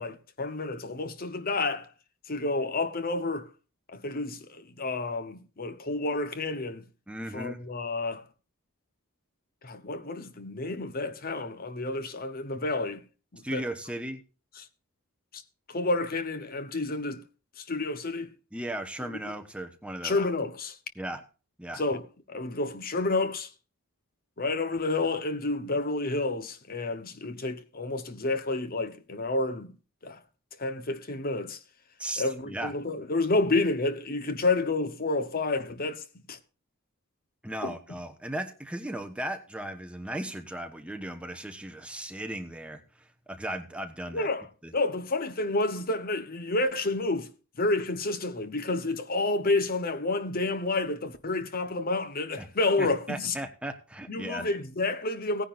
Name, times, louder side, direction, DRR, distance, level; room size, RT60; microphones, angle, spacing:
voice 1, 0.0-1.9 2.3-3.5 3.9-6.9 7.3-8.2 9.6-13.0 13.3-13.7 14.6-14.7 15.3-15.4 15.7-17.2 17.6-18.3 20.0-20.8 21.7-22.0 22.3-23.5 24.4-29.7 30.0-30.2 30.6-31.6 32.2-36.4 37.6-38.0 44.1-44.5 44.7-47.3 47.6-53.4 54.1-55.4, left 2 dB, 40° left, 1.0 m, -30 dB
voice 2, 7.1-7.6 13.4-14.2 18.5-20.2 21.0-21.2 21.6-21.8 32.0-32.7 37.4-44.3 44.6-44.7 52.4-52.5 52.8-54.5, right 1 dB, 5° right, 1.1 m, -36 dB
17.5 x 10.0 x 2.5 m
head